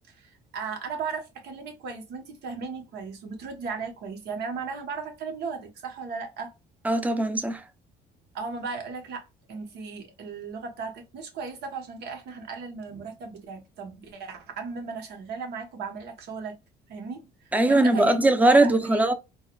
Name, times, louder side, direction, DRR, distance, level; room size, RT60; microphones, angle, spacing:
voice 1, 0.1-6.5 8.3-16.6 16.9-17.3 17.7-18.2 18.4-19.0, right 5 dB, 75° right, 1.1 m, -36 dB
voice 2, 6.8-7.6 17.5-19.1, right 2 dB, 10° right, 0.5 m, -20 dB
4.0 x 2.3 x 2.3 m
cardioid pair, 110°, 17 cm